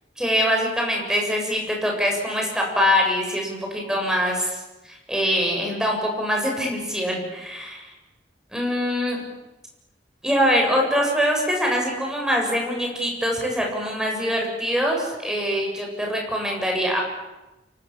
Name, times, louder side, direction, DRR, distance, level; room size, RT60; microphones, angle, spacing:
voice 1, 0.2-4.6 4.9-7.9 8.5-9.2 10.2-17.0, equal, 5° right, 0 dB, 7.7 m, -23 dB
29.0 x 24.5 x 7.4 m, 1.0 s
head